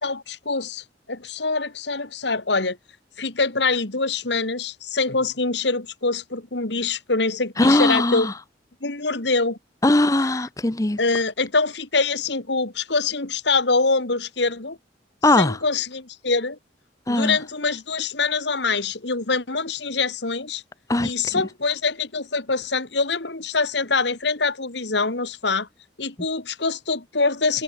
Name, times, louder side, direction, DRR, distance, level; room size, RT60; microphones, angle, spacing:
voice 1, 0.0-2.8 3.2-8.3 8.8-9.6 11.0-14.8 15.4-16.6 17.1-20.6 21.0-25.7 26.0-27.6, left 3 dB, 70° left, 2.3 m, -24 dB
voice 2, 7.6-8.3 9.8-11.0 15.2-15.6 17.1-17.4 20.9-21.4, left 2 dB, 20° left, 0.7 m, -20 dB
head